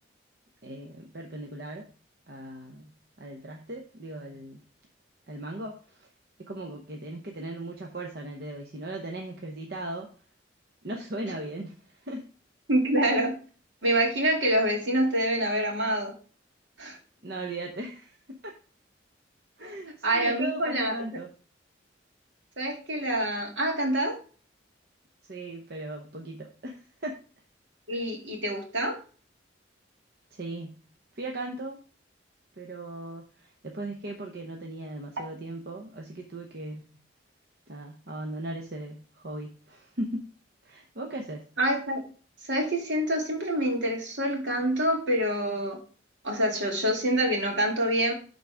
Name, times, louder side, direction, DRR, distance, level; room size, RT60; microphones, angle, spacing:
voice 1, 0.6-1.9 2.3-2.9 3.2-4.6 5.3-6.1 6.4-10.1 10.8-12.2 17.2-18.5 19.6-21.3 25.3-27.2 30.3-30.8 31.2-31.8 32.6-36.8 37.7-40.3 40.6-41.5, right 1 dB, 55° right, 0.9 m, -38 dB
voice 2, 12.7-13.3 13.8-16.1 16.8-17.0 19.6-19.7 20.0-21.0 22.6-24.2 27.9-29.0 41.6-42.0 42.4-45.8 46.2-48.1, right 1 dB, 75° right, 2.4 m, -26 dB
12.0 x 4.0 x 3.5 m
head